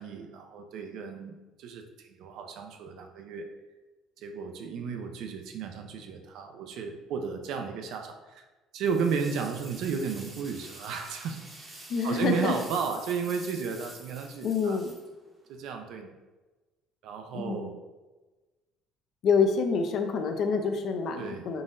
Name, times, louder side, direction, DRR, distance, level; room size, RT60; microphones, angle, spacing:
voice 1, 0.0-3.5 4.2-8.5 8.7-11.5 12.0-14.8 15.5-16.1 17.0-17.8 21.2-21.5, right 6 dB, 65° right, 5 dB, 0.4 m, -33 dB
sound 1, 8.8-15.6, right 2 dB, 20° right, 0.7 m, -47 dB
voice 2, 11.9-12.5 14.4-14.9 17.3-17.8 19.2-21.6, left 5 dB, 50° left, 6 dB, 0.4 m, -27 dB
3.9 x 3.8 x 2.5 m, 1.2 s
cardioid pair, 145°, 0 cm